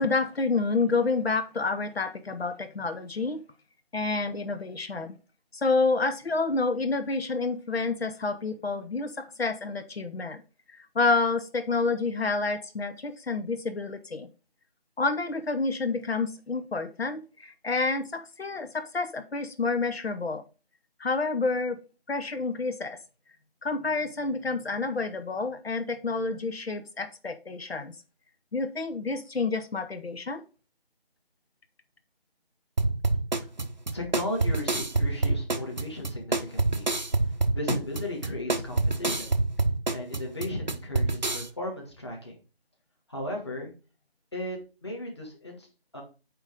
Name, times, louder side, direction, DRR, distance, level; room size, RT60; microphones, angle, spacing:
voice 1, 0.0-3.4 3.9-5.2 5.5-10.4 10.9-14.3 15.0-20.4 21.0-21.8 22.1-23.0 23.6-27.9 28.5-30.4, left 3 dB, 85° left, 9 dB, 0.9 m, -29 dB
sound 1, 32.8-41.5, right 2 dB, 50° right, 0.6 m, -27 dB
voice 2, 33.9-36.9 37.2-39.4 39.9-42.4 43.1-43.7 44.3-45.7 45.9-46.0, left 1 dB, 25° left, 0 dB, 1.6 m, -35 dB
8.9 x 3.1 x 5.0 m, 0.34 s
figure-of-eight pair, 175°, 30 cm